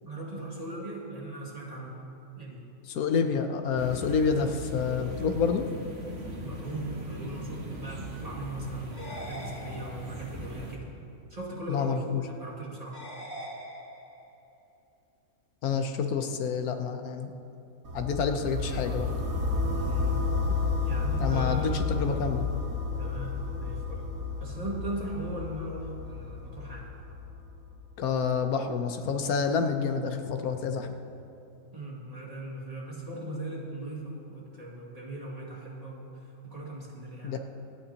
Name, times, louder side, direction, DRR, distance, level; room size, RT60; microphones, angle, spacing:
voice 1, 0.0-2.0 2.4-2.6 6.4-10.9 11.3-12.0 12.3-13.0 19.6-20.2 20.8-21.8 23.0-24.1 24.4-26.9 31.7-37.4, right 1 dB, 25° right, -4 dB, 2.0 m, -38 dB
voice 2, 2.9-5.6 11.7-12.2 15.6-17.3 17.9-19.1 21.2-22.6 28.0-30.9 37.2-37.4, left 5 dB, 85° left, 6 dB, 1.3 m, -28 dB
sound 1, 3.8-10.8, right 1 dB, 50° right, 1.7 m, -40 dB
sound 2, 8.9-10.3 12.9-14.3, equal, 15° left, 2.1 m, -42 dB
sound 3, 17.8-27.8, left 4 dB, 75° right, 1.8 m, -31 dB
26.0 x 9.5 x 2.9 m, 2.7 s
omnidirectional pair, 1.5 m